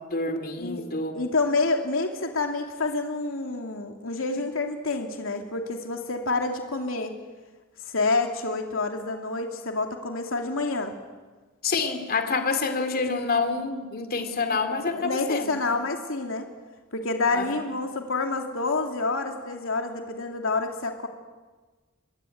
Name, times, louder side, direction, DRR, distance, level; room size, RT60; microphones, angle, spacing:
voice 1, 0.0-1.2 11.6-15.6 17.3-17.5, left 4 dB, 50° left, 7 dB, 2.8 m, -27 dB
voice 2, 1.1-7.1 7.9-11.0 14.5-14.6 14.9-16.5 16.9-21.1, left 3 dB, 80° left, 3 dB, 2.7 m, -28 dB
26.5 x 22.5 x 9.3 m, 1.3 s
head